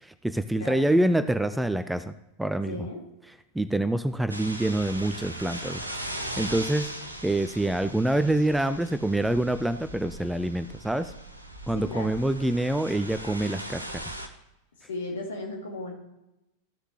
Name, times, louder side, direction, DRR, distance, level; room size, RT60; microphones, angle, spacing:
voice 1, 0.0-2.1 2.4-2.8 3.5-6.9 7.2-11.1 11.7-13.8, right 1 dB, 5° right, 11 dB, 0.4 m, -26 dB
voice 2, 0.5-1.1 2.7-3.0 11.7-12.2 14.9-15.9, left 2 dB, 65° left, 1 dB, 2.6 m, -36 dB
sound 1, 4.3-14.3, right 1 dB, 85° right, 0.9 m, -39 dB
15.0 x 6.4 x 3.1 m, 0.91 s
figure-of-eight pair, 90°, 0 cm